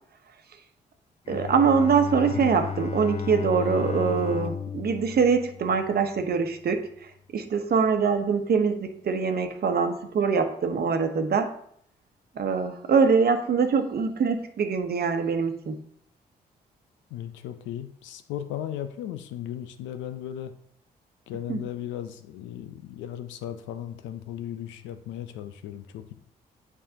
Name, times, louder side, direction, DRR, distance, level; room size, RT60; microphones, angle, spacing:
Bowed string instrument, 1.3-6.2, left 7 dB, 35° left, 0.4 m, -34 dB
voice 1, 1.3-6.9 7.3-11.5 12.4-15.8 21.5-21.6, right 5 dB, 55° right, 7 dB, 1.0 m, -23 dB
voice 2, 17.1-20.5 21.3-26.1, left 11 dB, 85° left, 10 dB, 0.6 m, -36 dB
8.7 x 4.8 x 2.8 m, 0.66 s
hypercardioid pair, 45°, 19 cm